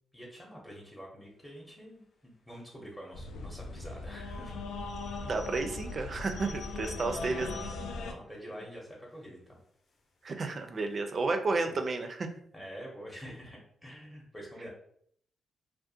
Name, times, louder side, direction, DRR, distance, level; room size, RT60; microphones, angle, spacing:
voice 1, 0.1-4.6 6.7-7.5 8.0-9.6 12.5-14.7, equal, 15° left, -3 dB, 0.7 m, -47 dB
sound 1, 3.1-8.1, left 3 dB, 85° left, 0.3 m, -39 dB
sound 2, 4.8-8.0 8.5-8.6 8.8-9.2 9.9-10.3 10.7-10.8 10.9-11.0, left 4 dB, 60° left, 0.7 m, -51 dB
voice 2, 5.2-7.5 10.2-12.3, right 3 dB, 45° right, 6 dB, 0.4 m, -32 dB
2.4 x 2.1 x 2.7 m, 0.67 s
cardioid pair, 75°, 0 cm